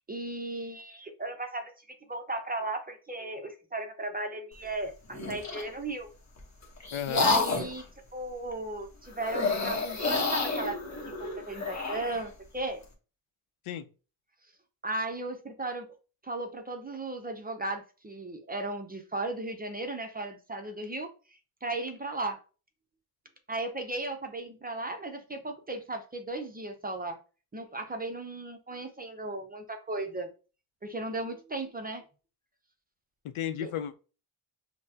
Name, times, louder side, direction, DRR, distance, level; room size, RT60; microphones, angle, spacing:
voice 1, 0.1-1.7 2.1-6.1 7.1-7.8 8.1-10.8 11.1-12.8 14.8-15.9 16.2-21.1 21.6-22.4 23.5-27.2 27.5-30.3 30.8-32.0 33.6-33.7, right 2 dB, 20° right, 0.5 m, -36 dB
sound 1, 5.1-5.7 6.4-7.8 9.2-12.2, left 4 dB, 35° left, 1.1 m, -30 dB
voice 2, 6.9-7.3 13.7-13.9 33.2-33.9, left 10 dB, 75° left, 0.6 m, -34 dB
5.5 x 2.1 x 2.8 m
cardioid pair, 105°, 50 cm